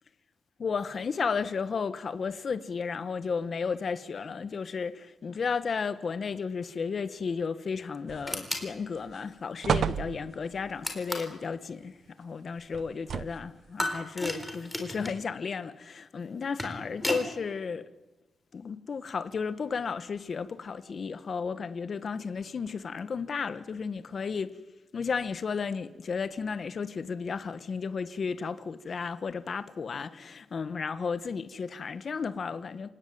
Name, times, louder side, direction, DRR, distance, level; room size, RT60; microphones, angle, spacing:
voice 1, 0.6-17.9 18.5-24.6 24.9-32.9, left 5 dB, 45° left, 1.2 m, -33 dB
sound 1, 8.1-8.6 9.0-9.2 9.6-10.6 12.7-13.6 14.3-14.4, right 7 dB, 60° right, 0.8 m, -31 dB
sound 2, 8.3-8.7 10.8-11.4 13.8-15.2 16.3-17.3, left 1 dB, 5° left, 4.1 m, -34 dB
27.5 x 17.5 x 9.4 m
wide cardioid pair, 140°, 0 cm